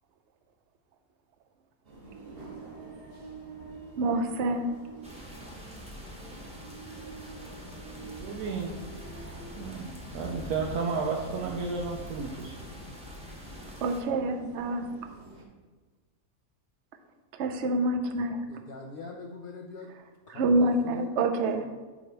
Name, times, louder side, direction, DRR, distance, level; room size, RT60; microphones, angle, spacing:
sound 1, 1.8-15.4, right 3 dB, 45° right, 1.0 m, -47 dB
voice 1, 4.0-4.7 13.8-14.8 17.3-18.4 20.3-21.7, right 2 dB, 65° right, 6 dB, 0.8 m, -27 dB
sound 2, 5.0-14.0, left 1 dB, 5° right, 0.8 m, -44 dB
voice 2, 8.2-8.7 9.6-12.5, right 4 dB, 85° right, -1 dB, 1.2 m, -32 dB
voice 3, 18.5-19.9 20.3-21.1 21.5-21.7, left 3 dB, 80° left, 0 dB, 0.5 m, -42 dB
8.0 x 3.0 x 4.6 m, 1.3 s
omnidirectional pair, 1.6 m